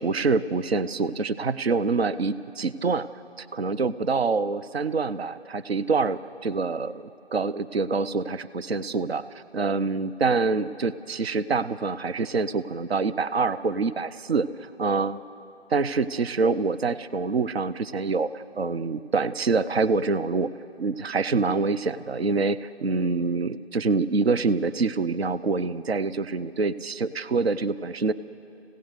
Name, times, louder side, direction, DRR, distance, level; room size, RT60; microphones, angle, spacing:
voice 1, 0.0-3.1 3.4-15.2 15.7-20.5 20.8-28.1, right 4 dB, 65° right, 14 dB, 0.6 m, -26 dB
26.5 x 16.5 x 6.6 m, 2.7 s
figure-of-eight pair, 165°, 33 cm